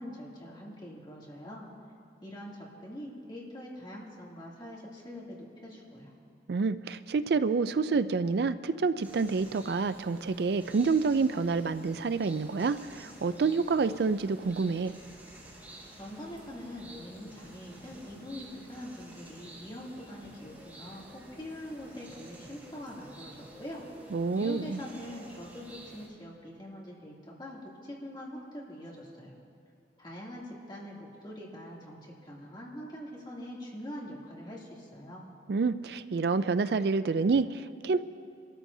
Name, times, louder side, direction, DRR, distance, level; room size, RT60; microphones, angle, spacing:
voice 1, 0.0-1.7 2.2-6.1 16.0-23.8 24.3-29.4 30.0-35.3, equal, 25° left, -4 dB, 2.7 m, -43 dB
voice 2, 6.5-14.9 24.1-24.8 35.5-38.0, right 4 dB, 60° right, 13 dB, 0.4 m, -28 dB
sound 1, 9.0-26.1, right 1 dB, 10° right, 3.9 m, -51 dB
28.5 x 13.5 x 2.7 m, 2.4 s
head